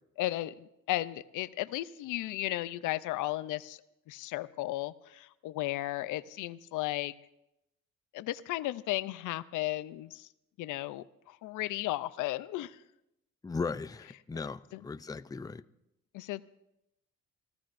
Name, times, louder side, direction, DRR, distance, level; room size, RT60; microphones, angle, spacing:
voice 1, 0.2-3.8 4.1-7.1 8.1-10.3 10.6-12.8 14.7-14.8 16.1-16.4, left 16 dB, 90° left, 16 dB, 0.5 m, -35 dB
voice 2, 13.4-15.6, left 4 dB, 10° left, 12 dB, 0.4 m, -37 dB
26.5 x 15.0 x 2.6 m, 0.87 s
cardioid pair, 90°, 30 cm